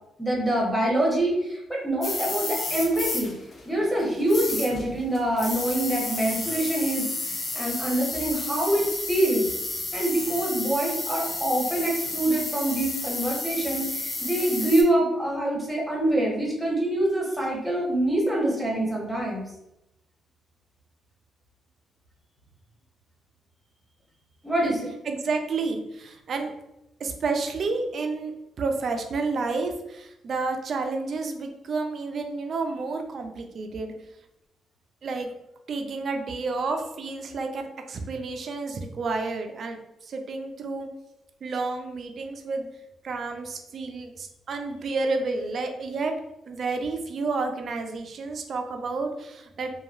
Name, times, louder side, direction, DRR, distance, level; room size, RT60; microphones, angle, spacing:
voice 1, 0.2-3.3 3.6-9.5 9.9-19.4 24.4-24.9, right 1 dB, 5° right, -3 dB, 1.0 m, -25 dB
sound 1, 2.0-14.8, left 2 dB, 40° left, 0.6 m, -32 dB
voice 2, 25.1-26.5 27.0-33.9 35.0-35.3 35.7-40.9 41.4-42.7 43.0-46.1 46.5-49.7, right 3 dB, 55° right, 5 dB, 0.4 m, -30 dB
2.9 x 2.3 x 2.4 m, 0.89 s
cardioid pair, 90°, 0 cm